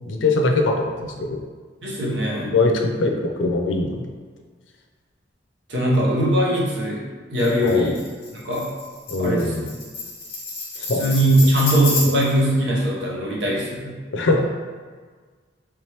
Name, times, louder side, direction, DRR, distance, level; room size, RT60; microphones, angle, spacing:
voice 1, 0.0-1.4 2.4-4.0 7.6-7.9 9.1-9.7 10.8-11.0 14.1-14.4, left 2 dB, 80° left, 2 dB, 0.5 m, -22 dB
voice 2, 1.8-2.5 5.7-7.0 7.3-8.0 8.3-8.7 9.2-9.5 11.0-13.9, right 1 dB, 65° right, -4 dB, 0.9 m, -20 dB
Tambourine, 7.4-12.4, left 3 dB, 35° left, 1.2 m, -30 dB
3.4 x 2.9 x 3.2 m, 1.5 s
head